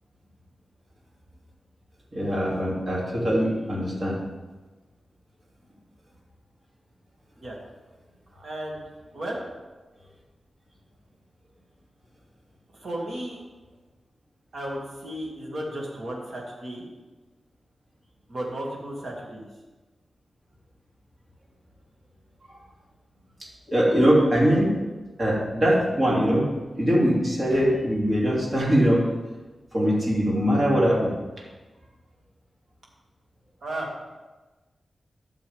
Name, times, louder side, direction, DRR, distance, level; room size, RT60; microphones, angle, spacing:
voice 1, 2.1-4.2 23.7-24.7 25.2-26.4 26.8-29.0 29.7-31.1, equal, 30° right, -5 dB, 2.8 m, -22 dB
voice 2, 8.3-8.8 9.1-9.4 12.7-13.4 14.5-16.8 18.3-19.4 33.6-33.9, right 1 dB, 55° right, -3 dB, 2.5 m, -34 dB
13.5 x 6.9 x 3.6 m, 1.2 s
wide cardioid pair, 155°, 0 cm